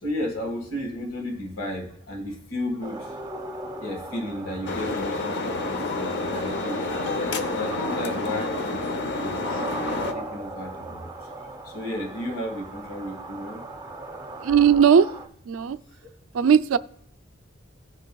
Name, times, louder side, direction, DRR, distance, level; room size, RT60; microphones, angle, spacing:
voice 1, 0.0-3.2 3.8-6.9 7.5-8.8 9.1-13.6, left 1 dB, 85° left, 2 dB, 1.8 m, -33 dB
sound 1, 2.8-15.3, right 2 dB, 20° right, 0.7 m, -38 dB
sound 2, 4.7-10.1, left 3 dB, 60° left, 0.7 m, -29 dB
voice 2, 14.4-15.1 15.5-15.8 16.3-16.8, right 7 dB, 80° right, 12 dB, 0.4 m, -17 dB
17.0 x 6.4 x 2.3 m, 0.69 s
head